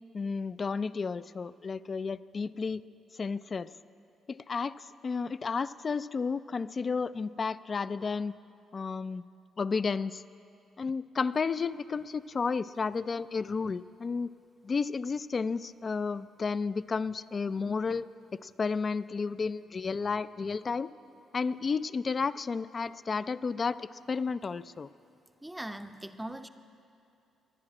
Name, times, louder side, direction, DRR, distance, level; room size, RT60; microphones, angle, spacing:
voice 1, 0.1-2.8 3.2-3.7 4.3-4.7 5.0-8.3 8.7-9.2 9.6-10.2 10.8-14.3 14.6-20.9 21.3-24.9, left 5 dB, 40° left, 16 dB, 0.3 m, -32 dB
voice 2, 25.4-26.5, right 1 dB, 5° right, 9 dB, 0.6 m, -40 dB
22.0 x 9.8 x 4.9 m, 2.6 s
cardioid pair, 90°, 0 cm